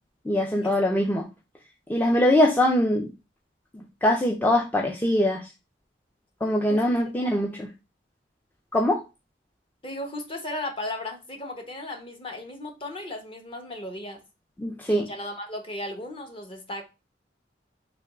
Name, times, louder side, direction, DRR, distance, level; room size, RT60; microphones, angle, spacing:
voice 1, 0.3-1.3 1.9-3.1 4.0-5.5 6.4-7.7 8.7-9.0 14.6-15.1, left 1 dB, 10° left, 0.4 m, -22 dB
voice 2, 7.2-7.6 9.8-14.2 14.9-16.8, left 1 dB, 30° left, 0.9 m, -36 dB
3.4 x 3.0 x 4.7 m
head